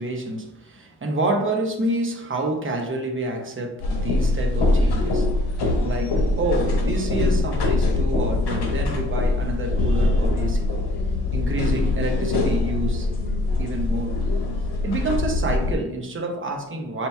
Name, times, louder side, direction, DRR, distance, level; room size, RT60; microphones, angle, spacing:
voice 1, 0.0-5.3 5.8-10.7 11.3-13.1 13.6-14.2 14.8-17.1, right 2 dB, 30° right, 3 dB, 0.8 m, -28 dB
sound 1, 3.8-15.7, left 2 dB, 65° left, 1.1 m, -23 dB
6.5 x 2.9 x 2.2 m, 0.85 s
cardioid pair, 95°, 42 cm